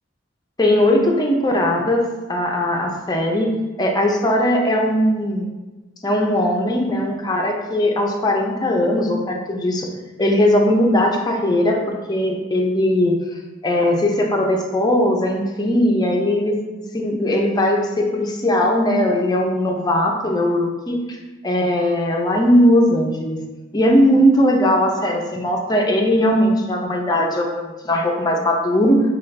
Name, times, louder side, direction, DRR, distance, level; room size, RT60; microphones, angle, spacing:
voice 1, 0.6-3.5 3.8-5.5 6.0-9.9 10.2-11.8 12.1-13.2 13.6-16.6 16.9-21.0 21.4-23.4 23.7-29.0, left 1 dB, 20° left, 1 dB, 0.5 m, -19 dB
5.5 x 2.3 x 3.2 m, 1.2 s
head